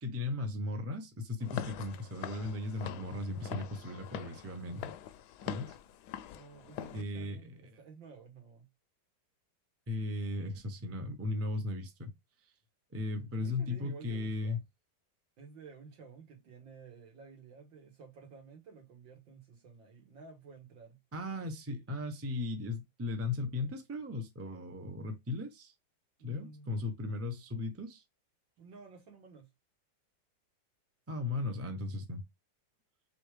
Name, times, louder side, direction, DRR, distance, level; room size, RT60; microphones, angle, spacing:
voice 1, 0.0-4.9 5.5-5.8 6.9-7.4 9.9-12.1 12.9-14.6 21.1-25.7 26.2-28.0 31.1-32.2, left 2 dB, 15° right, 0.5 m, -37 dB
Walk footsteps / Siren, 1.4-7.0, left 9 dB, 70° left, 1.0 m, -43 dB
voice 2, 6.3-8.7 13.2-14.6 15.4-21.0 26.2-26.9 28.6-29.5, right 5 dB, 80° right, 2.5 m, -53 dB
4.3 x 3.8 x 3.3 m
omnidirectional pair, 2.0 m